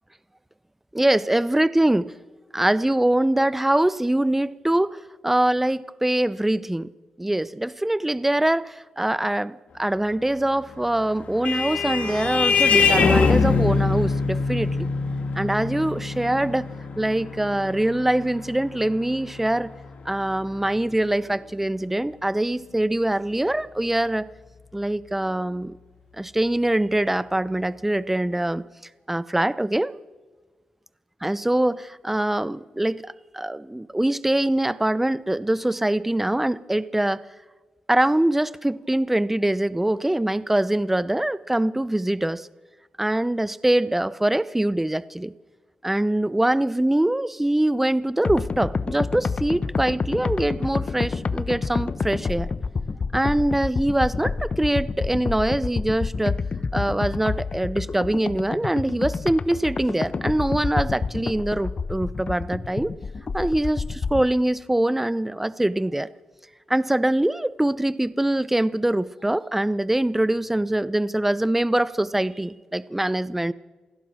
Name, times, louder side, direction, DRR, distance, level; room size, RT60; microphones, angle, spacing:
voice 1, 0.9-2.1 2.5-6.9 7.2-14.9 15.4-16.7 17.0-19.7 20.0-24.3 24.7-25.8 26.2-28.6 29.1-29.9 31.2-37.2 37.9-42.5 43.0-45.3 45.8-52.5 53.1-56.4 56.7-62.9 63.3-66.1 66.7-73.5, right 1 dB, 10° right, 0.7 m, -23 dB
Vehicle horn car horn honking, 10.8-19.8, left 4 dB, 65° left, 2.6 m, -23 dB
sound 1, 48.2-64.3, left 4 dB, 45° left, 0.9 m, -28 dB
28.0 x 17.0 x 6.3 m
cardioid pair, 80°, 2 cm